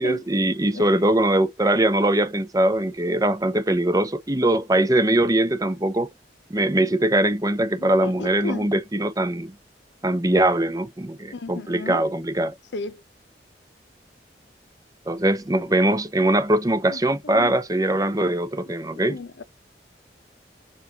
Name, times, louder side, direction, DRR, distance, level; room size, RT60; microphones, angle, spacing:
voice 1, 0.0-6.1 6.5-9.5 10.0-12.5 15.1-19.2, right 1 dB, 20° right, 0.7 m, -21 dB
voice 2, 7.8-8.7 11.3-12.0 12.7-13.0 16.9-17.5 19.0-19.4, left 3 dB, 80° left, 0.7 m, -34 dB
7.0 x 2.5 x 2.8 m
head